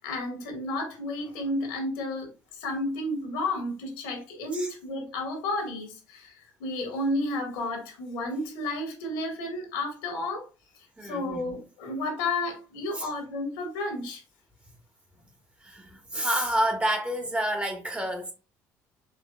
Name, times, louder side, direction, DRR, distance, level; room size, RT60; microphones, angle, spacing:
voice 1, 0.0-6.3 6.6-10.5 11.0-14.2 16.1-16.3, left 2 dB, 75° left, 1.5 m, -32 dB
voice 2, 11.0-11.4 12.9-13.1 15.6-18.3, right 1 dB, 15° right, 1.4 m, -29 dB
4.8 x 3.3 x 2.2 m
hypercardioid pair, 55°, 9 cm